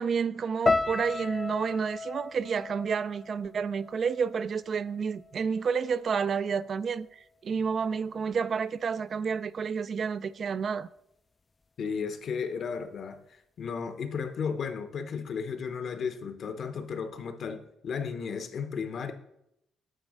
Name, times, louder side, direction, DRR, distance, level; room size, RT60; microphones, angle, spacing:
voice 1, 0.0-10.9, right 6 dB, 50° right, 0.3 m, -30 dB
sound 1, 0.7-4.9 5.1-5.9 6.5-6.7, left 3 dB, 25° left, 0.3 m, -33 dB
voice 2, 11.8-19.1, left 6 dB, 60° left, 0.9 m, -34 dB
9.1 x 3.2 x 6.3 m
cardioid pair, 90°, 0 cm